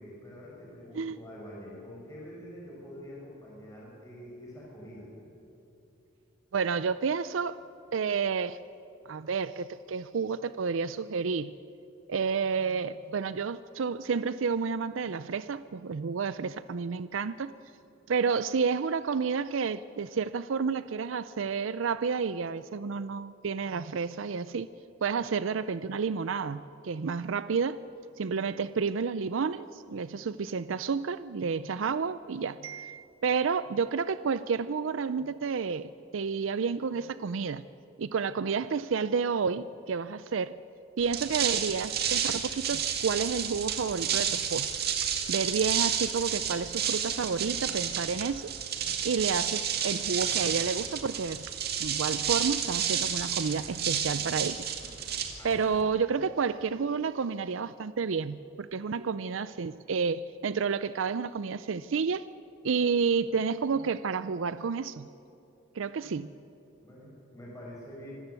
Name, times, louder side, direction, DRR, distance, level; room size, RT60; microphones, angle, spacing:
voice 1, 0.0-5.1 55.4-55.6 65.9-66.1 66.8-68.1, equal, 15° left, -5 dB, 6.5 m, -46 dB
voice 2, 6.5-7.6 7.9-8.6 9.1-11.5 12.1-17.5 18.1-24.7 25.0-27.8 28.2-37.6 38.0-40.5 41.0-44.8 45.3-48.5 49.0-51.5 51.8-54.6 55.4-62.3 62.6-65.1 65.7-66.3, right 5 dB, 80° right, 14 dB, 0.5 m, -30 dB
sound 1, 41.0-55.8, right 8 dB, 55° right, 2.1 m, -31 dB
26.0 x 15.0 x 8.2 m, 2.9 s
head